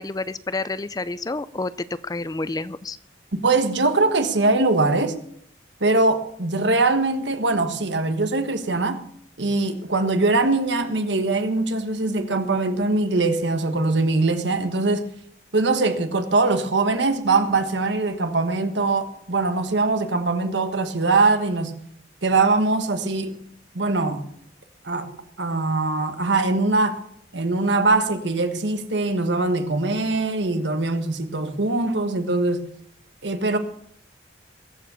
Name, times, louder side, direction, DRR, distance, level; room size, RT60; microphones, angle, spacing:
voice 1, 0.0-3.0, left 3 dB, 20° left, 0.5 m, -29 dB
voice 2, 3.3-5.2 5.8-9.0 9.4-15.0 15.5-21.7 22.2-23.4 23.7-24.2 24.8-27.0 27.3-32.6 33.2-33.6, right 3 dB, 80° right, 1.4 m, -22 dB
21.5 x 7.3 x 6.9 m
head